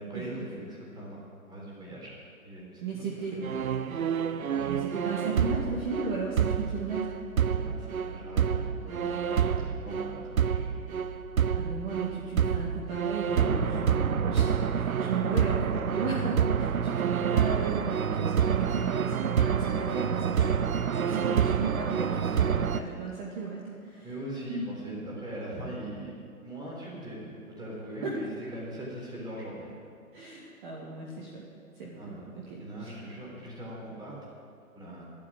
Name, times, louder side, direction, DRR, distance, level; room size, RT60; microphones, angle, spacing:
voice 1, 0.0-2.1 2.4-3.5 3.8-4.0 4.3-4.5 7.5-10.8 13.3-13.9 24.0-26.1 26.4-29.7 32.0-34.2 34.7-35.1, right 1 dB, 10° right, -4 dB, 3.6 m, -41 dB
voice 2, 2.8-3.4 4.7-7.1 9.3-9.6 11.5-17.8 18.1-20.5 20.9-24.1 24.5-24.7 28.0-28.1 30.1-31.4 31.8-32.2 32.5-32.9, right 4 dB, 35° right, -4 dB, 2.2 m, -35 dB
sound 1, 3.4-22.8, right 7 dB, 70° right, 0.9 m, -28 dB
12.5 x 12.0 x 7.5 m, 2.3 s
figure-of-eight pair, 140°, 43 cm